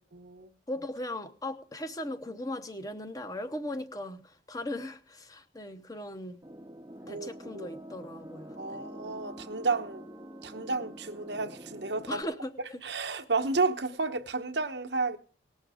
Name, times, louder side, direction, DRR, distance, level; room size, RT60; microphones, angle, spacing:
voice 1, 0.1-0.5 7.1-7.7 8.6-10.0 10.4-12.2 12.8-15.2, right 3 dB, 70° right, 1.0 m, -32 dB
voice 2, 0.7-6.4 7.1-8.8 12.1-12.5, left 1 dB, 20° left, 0.8 m, -38 dB
sound 1, 6.4-12.2, right 1 dB, 20° right, 0.6 m, -46 dB
19.0 x 6.5 x 4.9 m
head